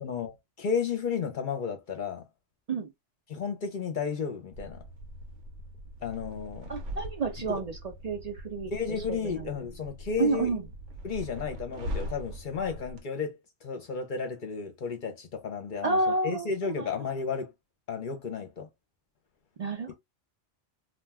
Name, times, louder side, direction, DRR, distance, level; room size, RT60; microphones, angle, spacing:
voice 1, 0.0-2.2 3.3-4.8 6.0-6.7 7.5-7.6 8.7-10.5 11.0-17.5 17.9-18.7 19.9-20.0, left 6 dB, 50° left, 0.7 m, -33 dB
sound 1, 4.5-13.0, equal, 80° right, 1.0 m, -41 dB
voice 2, 6.7-7.8 8.0-8.7 9.2-9.5 10.2-10.6 15.8-16.5 16.8-16.9 19.6-19.9, right 3 dB, 60° right, 0.4 m, -29 dB
2.4 x 2.2 x 3.3 m
omnidirectional pair, 1.2 m